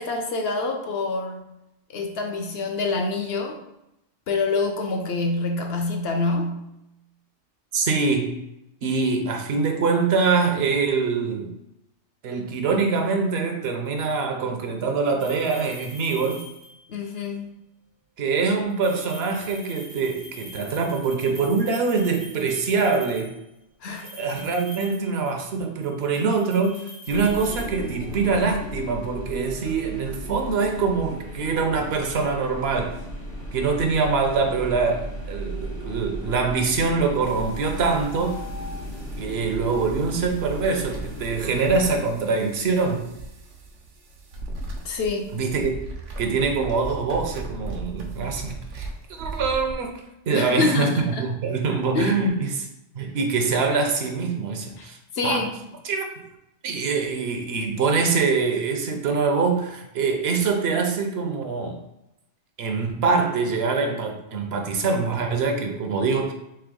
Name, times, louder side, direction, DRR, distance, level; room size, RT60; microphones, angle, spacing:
voice 1, 0.0-1.4 1.9-3.6 4.3-6.7 16.9-17.6 23.8-24.1 44.8-45.4 50.3-51.3 51.9-52.1 54.8-54.9 55.1-55.5, left 3 dB, 65° left, 3 dB, 0.8 m, -26 dB
voice 2, 7.7-8.4 8.8-11.5 12.2-16.4 18.2-23.3 24.1-33.0 33.5-38.4 39.2-43.1 45.3-45.7 46.2-48.9 49.2-52.7 52.9-55.4 55.8-56.1 56.6-61.8 62.6-66.3, right 4 dB, 65° right, 4 dB, 0.8 m, -24 dB
sound 1, 15.2-17.0 18.7-23.4 24.0-25.5 25.8-28.3, equal, 40° right, 0.4 m, -44 dB
sound 2, 27.1-42.0, equal, 85° left, 1.4 m, -35 dB
sound 3, 37.2-49.7, right 3 dB, 85° right, 1.0 m, -38 dB
3.4 x 3.2 x 3.6 m, 0.85 s
omnidirectional pair, 1.2 m